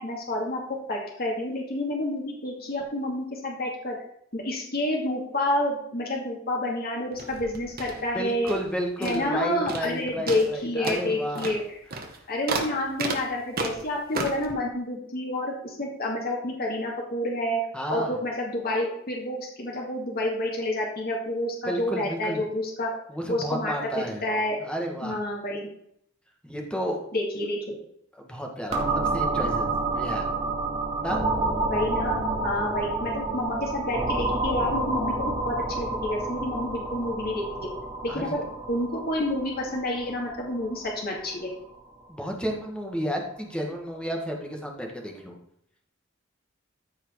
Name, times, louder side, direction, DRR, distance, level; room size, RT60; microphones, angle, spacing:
voice 1, 0.0-4.0 4.3-8.5 9.0-11.6 12.3-17.6 17.9-23.0 23.3-24.6 25.0-25.7 27.1-27.6 31.7-37.7 38.0-38.4 38.7-41.5, left 1 dB, 50° left, -2 dB, 2.5 m, -29 dB
sound 1, 7.1-8.7 9.0-9.4 9.7-10.0 10.3-14.5, right 3 dB, 50° right, 1.5 m, -34 dB
voice 2, 8.1-11.5 17.7-18.2 21.6-22.4 23.1-24.2 24.6-25.2 26.4-27.0 28.1-30.3 31.0-31.2 38.1-38.4 42.1-45.4, equal, 5° left, 1 dB, 1.7 m, -32 dB
sound 2, 28.7-42.3, right 2 dB, 30° right, 2.5 m, -29 dB
14.0 x 4.9 x 4.8 m, 0.72 s
head